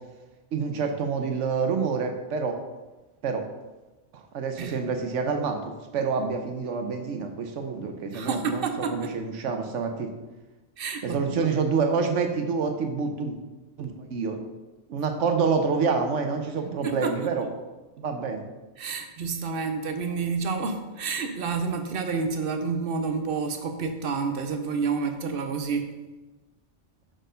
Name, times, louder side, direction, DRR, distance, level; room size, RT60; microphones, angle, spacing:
voice 1, 0.5-2.6 3.2-3.4 4.1-10.1 11.0-13.4 13.8-14.4 14.9-17.5 18.0-18.5, right 5 dB, 80° right, 5 dB, 1.1 m, -27 dB
voice 2, 4.6-4.9 8.1-9.1 10.8-11.5 16.6-17.3 18.8-25.9, right 5 dB, 55° right, 6 dB, 0.8 m, -29 dB
6.3 x 4.5 x 5.1 m, 1.2 s
omnidirectional pair, 1.2 m